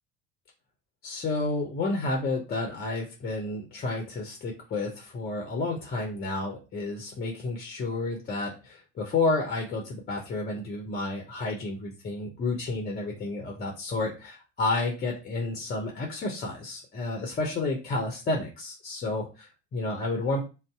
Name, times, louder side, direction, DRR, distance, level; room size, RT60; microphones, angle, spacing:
voice 1, 1.0-20.4, left 2 dB, 25° left, 1 dB, 0.7 m, -31 dB
2.6 x 2.0 x 3.5 m, 0.31 s
figure-of-eight pair, 70°, 36 cm